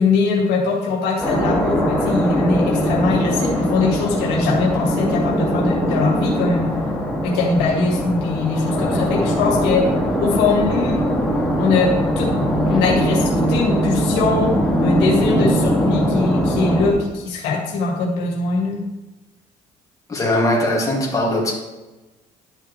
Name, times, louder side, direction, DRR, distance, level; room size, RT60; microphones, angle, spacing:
voice 1, 0.0-6.7 7.2-9.8 10.2-11.0 11.6-11.9 12.1-12.3 12.7-14.5 14.8-18.8, left 4 dB, 90° left, 0 dB, 1.8 m, -21 dB
sound 1, 1.2-16.9, equal, 5° left, 2.1 m, -21 dB
voice 2, 20.1-21.5, left 1 dB, 20° left, -3 dB, 2.4 m, -20 dB
11.0 x 5.9 x 3.3 m, 1.1 s
cardioid pair, 110°, 17 cm